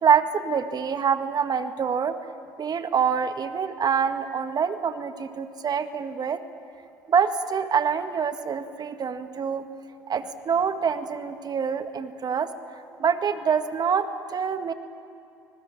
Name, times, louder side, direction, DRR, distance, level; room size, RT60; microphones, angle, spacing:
voice 1, 0.0-2.2 2.6-6.4 7.1-9.7 10.1-12.5 13.0-14.7, right 6 dB, 45° right, 9 dB, 1.8 m, -25 dB
29.0 x 20.0 x 8.9 m, 2.6 s
hypercardioid pair, 65°, 10 cm